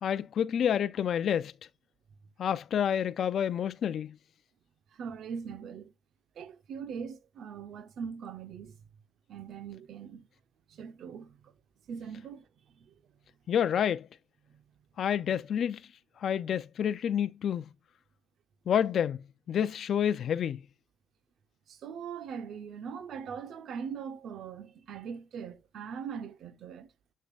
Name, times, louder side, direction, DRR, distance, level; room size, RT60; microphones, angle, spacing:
voice 1, 0.0-1.5 2.4-4.1 13.5-14.1 15.0-15.8 16.2-17.7 18.7-19.2 19.5-20.6, left 9 dB, 65° left, 0.4 m, -28 dB
voice 2, 4.9-5.9 6.3-8.8 9.3-10.3 10.7-11.5 11.9-12.9 14.5-14.6 21.7-26.9, right 6 dB, 70° right, 0.8 m, -41 dB
6.6 x 6.6 x 2.4 m
cardioid pair, 90°, 0 cm